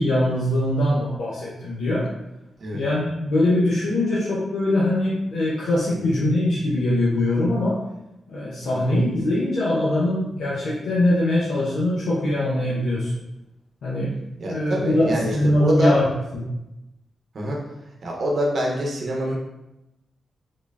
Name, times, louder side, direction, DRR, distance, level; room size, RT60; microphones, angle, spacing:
voice 1, 0.0-2.1 2.7-7.8 8.3-13.1 13.8-14.2 14.4-16.1 16.3-16.4, left 1 dB, 85° left, -7 dB, 0.7 m, -22 dB
voice 2, 14.4-16.0 17.3-17.6 18.0-19.4, equal, 65° right, -1 dB, 0.7 m, -25 dB
3.6 x 3.2 x 2.4 m, 0.93 s
cardioid pair, 70°, 0 cm